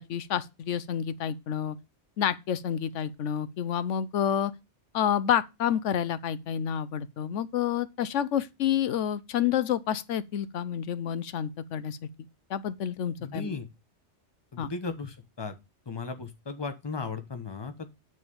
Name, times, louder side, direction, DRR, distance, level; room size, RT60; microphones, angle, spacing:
voice 1, 0.0-1.8 2.2-4.5 4.9-12.0 12.5-13.5 14.6-14.7, left 9 dB, 85° left, 1.0 m, -29 dB
voice 2, 13.2-13.7 14.5-15.5 15.9-17.9, left 4 dB, 25° left, 1.1 m, -36 dB
9.6 x 3.6 x 7.0 m
omnidirectional pair, 1.2 m